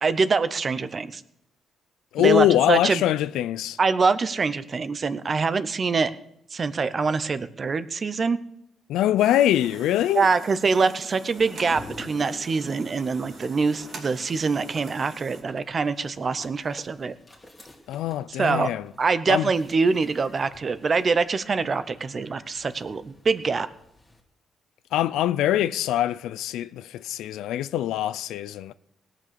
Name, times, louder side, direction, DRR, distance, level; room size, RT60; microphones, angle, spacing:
voice 1, 0.0-1.2 2.2-3.0 3.8-6.1 6.5-8.4 10.1-17.1 18.4-18.7 19.0-23.7, right 4 dB, 40° right, 0.7 m, -24 dB
voice 2, 2.1-3.8 8.9-10.3 17.9-18.9 19.3-19.5 24.9-28.7, left 12 dB, 85° left, 0.4 m, -23 dB
sound 1, 9.2-15.4, right 4 dB, 60° right, 2.6 m, -44 dB
sound 2, 11.4-24.2, left 1 dB, 15° left, 2.3 m, -49 dB
18.0 x 6.0 x 6.8 m
cardioid pair, 90°, 0 cm